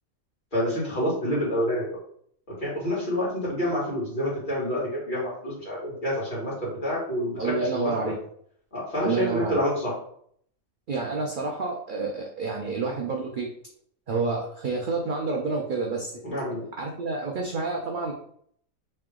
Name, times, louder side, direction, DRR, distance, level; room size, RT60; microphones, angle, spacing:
voice 1, 0.5-2.0 2.6-7.9 8.7-9.9 16.2-16.6, equal, 35° left, -7 dB, 1.9 m, -28 dB
voice 2, 7.4-8.2 9.0-9.6 10.9-13.5 14.1-16.1 16.8-18.1, right 3 dB, 65° right, 0 dB, 0.5 m, -29 dB
3.4 x 2.8 x 3.6 m, 0.64 s
omnidirectional pair, 1.5 m